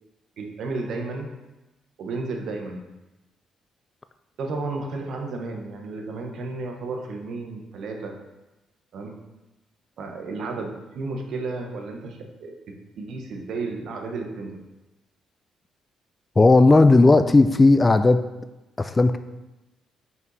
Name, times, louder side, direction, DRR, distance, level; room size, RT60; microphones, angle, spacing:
voice 1, 0.4-1.3 2.0-2.8 4.4-8.1 8.9-9.1 10.0-12.5 13.0-14.6, right 3 dB, 70° right, 2 dB, 1.1 m, -32 dB
voice 2, 16.4-18.2 18.8-19.2, left 3 dB, 25° left, 11 dB, 0.3 m, -15 dB
5.5 x 4.7 x 4.1 m, 1.0 s
cardioid pair, 90°, 0 cm